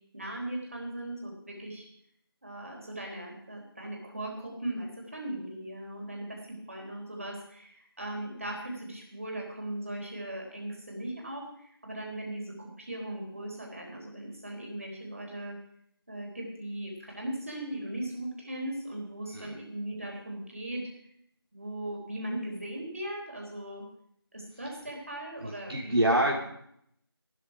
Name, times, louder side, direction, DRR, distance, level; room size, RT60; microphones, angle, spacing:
voice 1, 0.1-1.9 2.4-15.6 16.1-20.9 21.5-23.8 24.3-26.0, right 1 dB, 35° right, 0 dB, 3.8 m, -38 dB
voice 2, 25.4-26.4, right 1 dB, 75° right, -2 dB, 3.2 m, -26 dB
14.5 x 12.0 x 4.8 m, 0.69 s
figure-of-eight pair, 175°, 13 cm